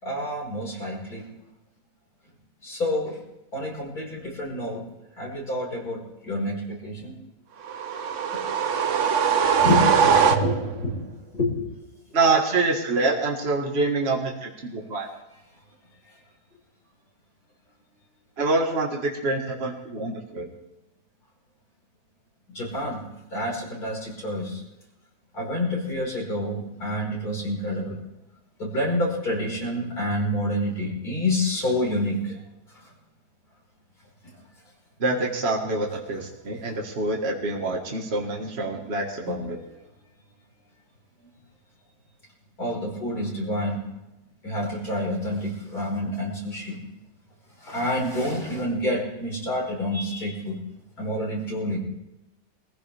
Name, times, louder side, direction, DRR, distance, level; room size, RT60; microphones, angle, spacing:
voice 1, 0.0-1.2 2.6-3.2 3.5-4.8 5.2-6.0 6.2-7.1 9.6-11.6 22.5-23.0 23.3-24.6 25.3-27.9 28.6-32.3 39.3-39.4 42.6-43.8 44.4-46.8 47.7-50.6 51.0-51.8, left 1 dB, 60° left, -3 dB, 5.6 m, -28 dB
sound 1, 7.6-10.8, right 7 dB, 55° right, 1.1 m, -21 dB
voice 2, 12.1-15.1 18.4-20.5 35.0-39.6, right 3 dB, 40° right, 0 dB, 2.0 m, -26 dB
23.5 x 15.5 x 3.5 m, 0.94 s
omnidirectional pair, 1.8 m